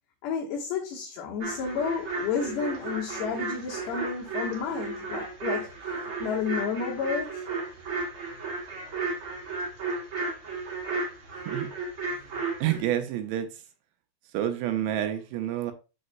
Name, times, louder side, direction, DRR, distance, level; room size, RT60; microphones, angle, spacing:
voice 1, 0.2-7.4, left 6 dB, 75° left, 3.2 m, -31 dB
sound 1, 1.4-12.8, right 3 dB, 50° right, 1.6 m, -34 dB
voice 2, 12.6-13.5 14.3-15.7, right 11 dB, 85° right, 3.1 m, -29 dB
12.0 x 4.3 x 2.2 m
omnidirectional pair, 5.2 m